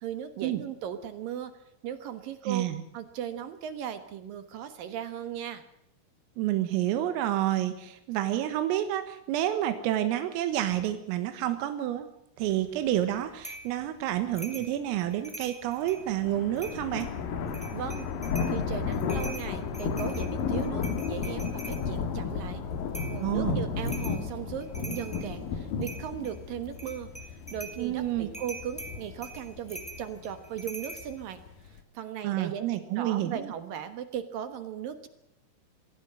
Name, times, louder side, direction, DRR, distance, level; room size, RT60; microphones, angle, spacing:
voice 1, 0.0-1.5 1.8-2.7 2.9-5.6 17.7-18.1 18.5-22.6 23.1-31.4 31.6-32.6 33.0-35.1, right 9 dB, 70° right, 10 dB, 2.2 m, -37 dB
voice 2, 2.5-2.8 6.4-12.1 12.4-17.1 23.2-23.6 27.8-28.3 32.2-33.5, right 13 dB, 90° right, 9 dB, 4.0 m, -29 dB
sound 1, 13.4-13.7 14.3-14.7 15.1-16.0 16.6-17.1 17.5-18.5 18.9-21.8 22.9-23.2 23.8-24.2 24.6-25.3 25.8-26.3 26.7-27.8 28.3-31.1, right 2 dB, ahead, 2.5 m, -43 dB
sound 2, 15.9-31.8, left 5 dB, 60° left, 2.7 m, -33 dB
23.0 x 16.5 x 7.7 m, 0.78 s
omnidirectional pair, 5.8 m